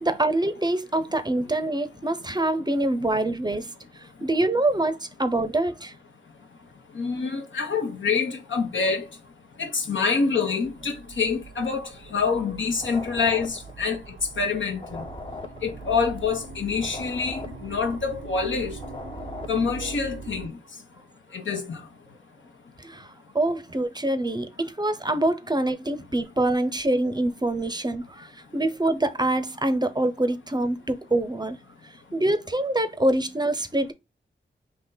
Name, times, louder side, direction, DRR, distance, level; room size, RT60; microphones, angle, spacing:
voice 1, 0.0-3.7 4.2-5.9 22.8-31.6 32.1-33.9, right 1 dB, 20° right, 0.5 m, -25 dB
voice 2, 6.9-9.1 9.6-14.0 14.4-15.1 15.6-18.8 19.5-20.5 21.3-21.8, left 5 dB, 85° left, 1.0 m, -26 dB
sound 1, 10.6-20.5, right 5 dB, 75° right, 0.6 m, -42 dB
sound 2, 12.7-14.5 14.7-18.5 18.7-20.1, left 3 dB, 25° left, 0.5 m, -41 dB
3.7 x 2.8 x 3.8 m
wide cardioid pair, 60°, 19 cm